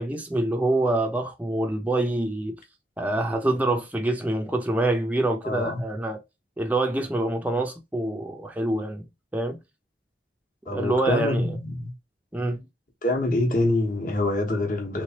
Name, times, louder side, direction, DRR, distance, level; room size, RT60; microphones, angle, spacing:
voice 1, 0.0-2.6 3.0-6.2 6.6-9.1 9.3-9.6 10.7-11.6 12.3-12.6, right 2 dB, 10° right, 0.5 m, -26 dB
voice 2, 5.4-5.8 10.7-11.9 13.0-15.0, left 1 dB, 50° left, 1.1 m, -25 dB
3.3 x 3.2 x 2.8 m
head